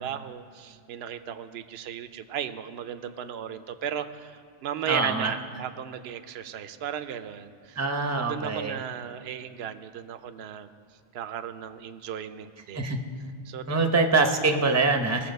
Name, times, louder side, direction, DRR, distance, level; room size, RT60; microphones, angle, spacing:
voice 1, 0.0-7.8 8.2-10.7 11.1-12.8 13.5-13.8, right 9 dB, 70° right, 10 dB, 0.8 m, -36 dB
voice 2, 4.9-5.3 7.8-8.8 12.7-13.0 13.7-15.3, right 3 dB, 15° right, 5 dB, 0.6 m, -24 dB
19.5 x 7.1 x 5.3 m, 2.3 s
omnidirectional pair, 1.2 m